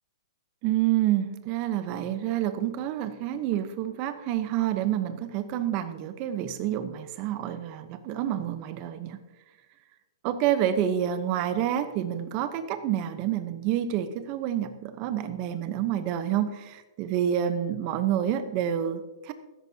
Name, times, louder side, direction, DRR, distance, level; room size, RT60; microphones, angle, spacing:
voice 1, 0.6-9.2 10.2-19.3, right 11 dB, 35° right, 10 dB, 1.0 m, -28 dB
16.0 x 13.5 x 2.9 m, 1.2 s
hypercardioid pair, 150°, 3 cm